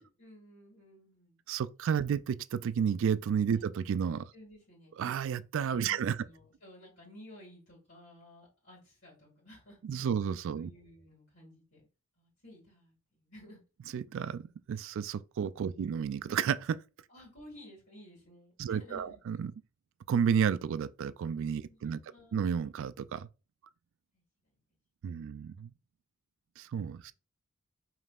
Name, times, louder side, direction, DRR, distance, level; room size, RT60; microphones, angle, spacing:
voice 1, 0.0-1.4 3.6-3.7 4.3-4.9 5.9-9.8 10.5-11.8 12.2-13.6 15.7-16.0 17.1-19.2 21.7-22.7 24.1-24.2 27.0-27.1, left 1 dB, 60° left, 2.0 m, -55 dB
voice 2, 1.5-4.3 5.0-6.2 9.8-10.7 13.9-16.8 18.6-19.5 20.1-22.0 22.3-23.3 25.0-25.7 26.6-27.1, right 7 dB, 65° right, 0.3 m, -31 dB
5.2 x 3.2 x 2.4 m
head